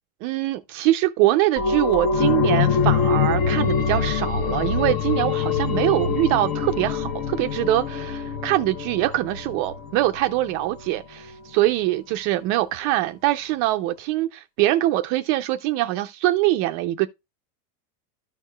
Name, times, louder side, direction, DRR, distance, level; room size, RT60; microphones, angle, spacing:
voice 1, 0.2-17.1, right 15 dB, 40° right, 0.4 m, -23 dB
sound 1, 1.6-10.9 11.3-11.4, left 6 dB, 40° left, 0.9 m, -24 dB
13.5 x 4.6 x 2.2 m
supercardioid pair, 140°, 48 cm